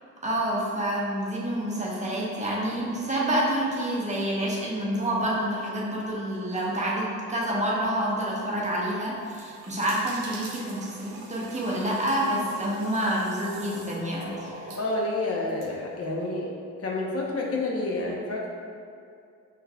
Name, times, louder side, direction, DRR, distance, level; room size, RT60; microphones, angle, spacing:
voice 1, 0.2-14.7, right 1 dB, 20° right, -5 dB, 0.9 m, -28 dB
sound 1, 9.1-15.7, right 2 dB, 70° right, 0.7 m, -44 dB
voice 2, 14.7-18.5, left 2 dB, 50° left, -2 dB, 0.8 m, -29 dB
5.5 x 3.2 x 2.3 m, 2.3 s
cardioid pair, 80°, 32 cm